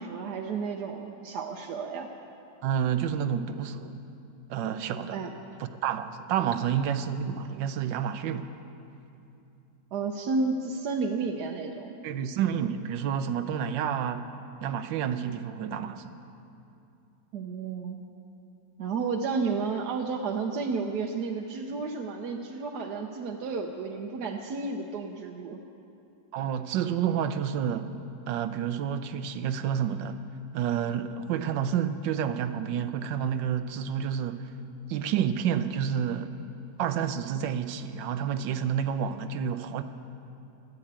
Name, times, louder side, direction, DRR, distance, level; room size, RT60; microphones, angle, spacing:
voice 1, 0.0-2.1 5.1-5.3 9.9-11.9 17.3-18.1 18.8-25.6, right 4 dB, 65° right, 2 dB, 1.3 m, -32 dB
voice 2, 2.6-3.9 4.5-5.2 5.6-8.5 12.0-14.3 14.6-16.1 26.3-27.9 28.3-30.2 30.5-34.5 34.9-36.3 36.8-39.8, right 8 dB, 85° right, 11 dB, 1.4 m, -29 dB
13.0 x 11.0 x 8.8 m, 2.7 s
omnidirectional pair, 1.9 m